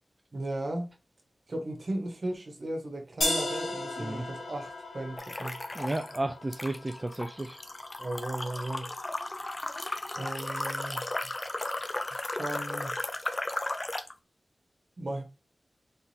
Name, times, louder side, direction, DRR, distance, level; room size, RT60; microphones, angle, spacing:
voice 1, 0.3-0.9 1.5-5.6 8.0-8.9 10.1-11.1 12.4-13.0 15.0-15.2, right 1 dB, 60° right, 1.5 m, -36 dB
sound 1, 3.2-9.2, left 2 dB, 85° left, 1.9 m, -37 dB
sound 2, 5.2-6.2 6.5-14.1, left 2 dB, 35° left, 0.6 m, -35 dB
voice 2, 5.7-7.6, right 2 dB, 30° right, 0.4 m, -33 dB
3.9 x 3.8 x 2.8 m
cardioid pair, 50°, 0 cm